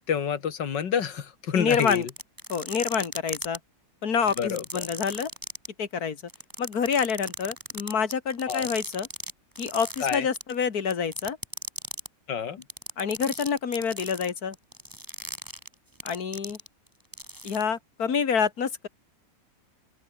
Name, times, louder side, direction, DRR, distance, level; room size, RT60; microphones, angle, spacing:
voice 1, 0.1-2.0 4.4-4.8 8.5-8.7 10.0-10.3 12.3-12.6, left 7 dB, 90° left, 2.3 m, -28 dB
voice 2, 1.5-2.1 2.5-3.6 4.0-5.3 5.8-6.2 6.6-9.1 9.6-11.4 13.0-14.6 16.0-16.6 17.4-18.9, left 6 dB, 60° left, 2.4 m, -27 dB
sound 1, 1.6-3.6 4.2-5.7 6.3-9.3 9.6-10.5 10.9-12.1 12.6-16.9 17.1-17.6, equal, 10° right, 7.1 m, -37 dB
open air
omnidirectional pair, 1.9 m